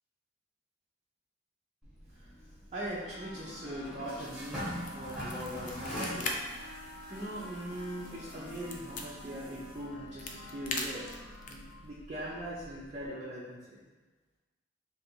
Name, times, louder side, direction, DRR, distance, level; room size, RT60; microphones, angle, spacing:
sound 1, 1.8-13.1, equal, 5° right, 1.1 m, -45 dB
voice 1, 2.7-6.3 6.7-11.2 11.5-13.8, equal, 35° right, -8 dB, 0.6 m, -41 dB
sound 2, 3.0-11.9, left 1 dB, 70° left, 0.9 m, -50 dB
sound 3, 4.8-6.3 6.7-6.8 7.2-9.1 9.9-11.7, left 3 dB, 45° left, 0.4 m, -39 dB
3.1 x 2.5 x 4.4 m, 1.3 s
head